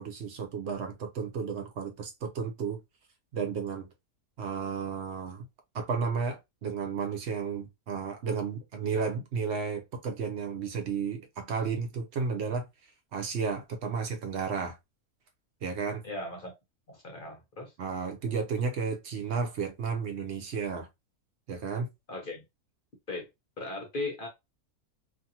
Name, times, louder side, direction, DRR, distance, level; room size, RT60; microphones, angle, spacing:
voice 1, 0.0-2.8 3.3-3.9 4.4-5.5 5.7-12.6 13.1-14.8 15.6-16.0 17.8-20.9 21.5-21.9, right 5 dB, 60° right, 0.8 m, -33 dB
voice 2, 16.0-16.5 16.9-17.7 22.1-22.4 23.1-23.3 23.6-24.3, left 2 dB, 45° left, 0.7 m, -37 dB
2.6 x 2.5 x 2.7 m
omnidirectional pair, 1.5 m